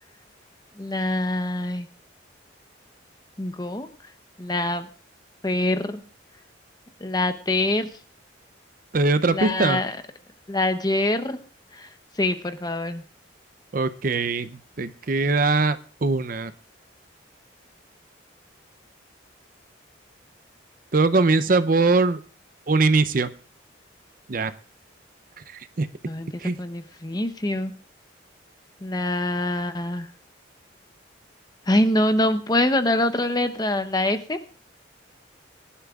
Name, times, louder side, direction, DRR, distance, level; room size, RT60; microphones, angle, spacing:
voice 1, 0.8-1.9 3.4-3.9 4.4-4.9 5.4-6.0 7.0-7.9 9.3-10.0 10.5-11.4 11.7-11.9 12.2-13.0 26.1-26.3 26.6-27.7 28.8-30.1 31.7-34.4, left 1 dB, 20° left, 9 dB, 0.7 m, -24 dB
voice 2, 8.9-9.8 13.7-16.5 20.9-22.2 22.7-23.3 24.3-24.5 25.5-25.9 26.4-26.6, right 3 dB, 45° right, 13 dB, 0.5 m, -21 dB
23.0 x 11.5 x 2.4 m, 0.41 s
head